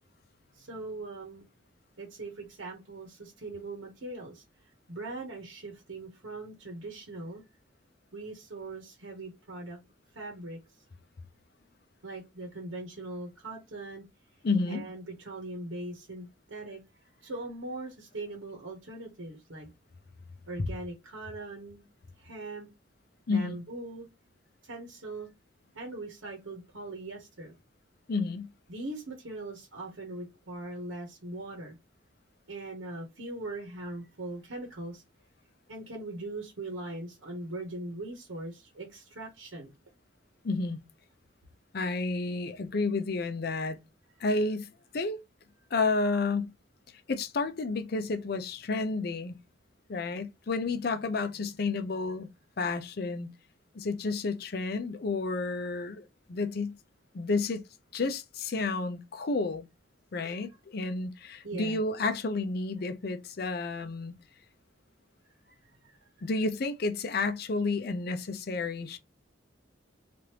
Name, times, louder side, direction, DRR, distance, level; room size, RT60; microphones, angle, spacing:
voice 1, 0.5-1.4 2.0-4.4 4.9-7.4 8.1-9.8 10.1-10.6 12.0-14.0 14.7-16.8 17.2-19.7 20.5-21.8 22.2-22.7 23.3-24.1 24.6-25.3 25.7-27.5 28.7-31.7 32.5-35.0 35.7-39.7 60.2-60.4 61.4-61.8 65.5-65.6 65.8-66.3, right 2 dB, 85° right, 0.9 m, -40 dB
voice 2, 14.4-14.9 23.3-23.6 28.1-28.5 40.4-40.8 41.7-43.8 44.2-45.2 45.7-46.5 47.1-49.4 49.9-52.3 52.6-53.3 53.7-56.8 57.1-57.6 57.9-59.7 60.1-64.1 66.2-69.0, left 3 dB, 50° left, 0.5 m, -31 dB
2.9 x 2.5 x 3.2 m
head